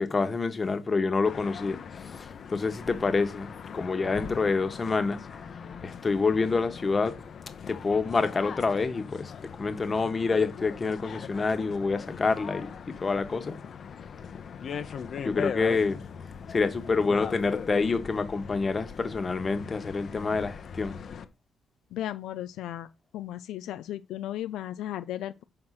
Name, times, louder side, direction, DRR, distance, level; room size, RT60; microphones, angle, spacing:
voice 1, 0.0-1.8 2.0-5.4 5.8-7.1 7.7-9.3 9.6-13.6 15.2-16.0 16.5-21.0, left 4 dB, 30° left, 1.3 m, -27 dB
sound 1, 1.2-21.2, left 7 dB, 55° left, 0.8 m, -40 dB
voice 2, 21.9-22.9 23.1-25.4, left 12 dB, 85° left, 0.4 m, -35 dB
5.7 x 4.4 x 6.3 m
cardioid pair, 90°, 0 cm